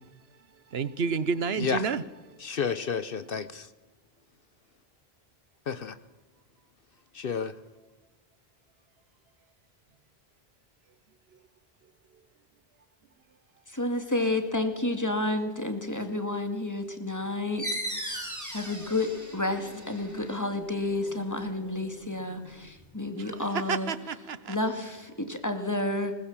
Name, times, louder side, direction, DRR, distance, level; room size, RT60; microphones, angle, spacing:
voice 1, 0.7-2.0 23.2-24.6, right 5 dB, 75° right, 1.1 m, -30 dB
voice 2, 2.4-3.7 5.7-6.0 7.1-7.5, left 6 dB, 60° left, 1.0 m, -31 dB
voice 3, 13.7-23.9 24.5-26.1, left 2 dB, 15° left, 2.2 m, -31 dB
sound 1, 17.6-22.9, equal, 15° right, 3.4 m, -39 dB
20.5 x 20.0 x 7.4 m
omnidirectional pair, 1.1 m